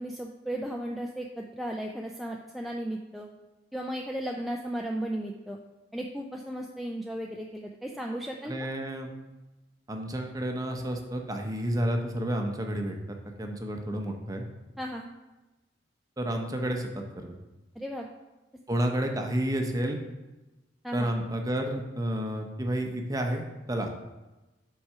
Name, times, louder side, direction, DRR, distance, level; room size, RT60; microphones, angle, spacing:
voice 1, 0.0-3.3 3.7-5.6 5.9-8.5 14.8-15.1 17.8-18.1 20.8-21.1, right 1 dB, ahead, 0 dB, 0.3 m, -35 dB
voice 2, 8.5-9.1 9.9-13.0 13.4-14.4 16.2-17.4 18.7-20.0 20.9-23.9, right 1 dB, 20° right, 3 dB, 0.7 m, -30 dB
5.9 x 4.7 x 5.5 m, 1.1 s
head